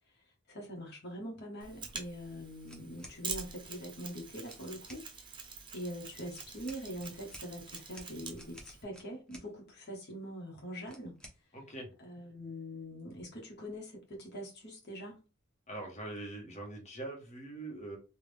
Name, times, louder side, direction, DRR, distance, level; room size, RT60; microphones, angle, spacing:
voice 1, 0.5-5.4 5.7-11.1 12.0-15.2, equal, 50° left, 1.2 m, -43 dB
Mechanisms, 1.6-8.8, right 5 dB, 20° right, 0.8 m, -46 dB
sound 1, 2.7-3.2 4.4-5.0 6.3-9.5 10.9-11.4, equal, 5° left, 0.9 m, -53 dB
voice 2, 11.5-11.9 15.7-18.0, right 2 dB, 35° left, 1.4 m, -43 dB
3.6 x 2.5 x 3.3 m
head